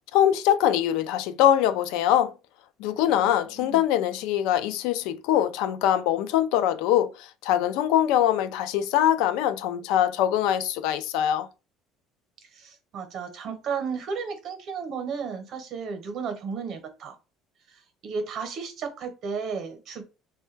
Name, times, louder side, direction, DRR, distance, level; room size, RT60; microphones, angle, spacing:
voice 1, 0.1-2.3 2.8-11.5, left 11 dB, 80° left, 0.3 m, -23 dB
voice 2, 3.1-3.8 12.5-17.2 18.0-20.0, right 5 dB, 45° right, 0.8 m, -33 dB
3.1 x 2.2 x 3.2 m
cardioid pair, 155°, 0 cm